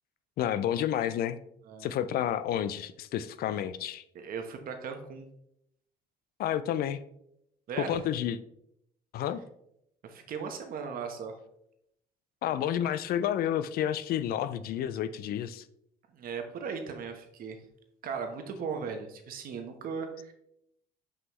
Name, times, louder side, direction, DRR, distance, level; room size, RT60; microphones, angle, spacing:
voice 1, 0.4-1.4 1.8-4.0 6.4-7.0 7.8-8.4 9.1-9.4 12.4-15.6, left 10 dB, 65° left, 13 dB, 0.4 m, -30 dB
voice 2, 4.1-5.3 7.7-8.0 10.0-11.3 16.1-17.6 18.0-20.3, right 5 dB, 60° right, 5 dB, 1.1 m, -37 dB
5.6 x 5.5 x 3.1 m, 0.77 s
cardioid pair, 110°, 17 cm